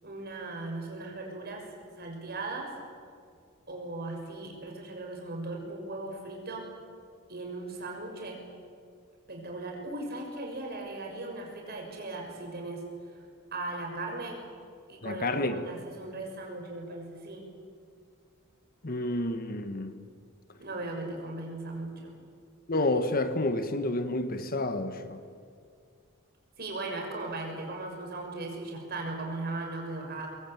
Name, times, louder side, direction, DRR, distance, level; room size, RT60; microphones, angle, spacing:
voice 1, 0.0-1.6 2.0-2.7 3.7-6.7 7.3-8.4 9.3-13.2 13.5-14.4 14.9-17.5 20.6-22.2 26.6-30.3, right 2 dB, 45° right, 6.4 m, -38 dB
voice 2, 15.0-15.6 18.8-20.0 22.7-25.2, left 2 dB, 40° left, 1.3 m, -29 dB
24.0 x 22.5 x 9.1 m
head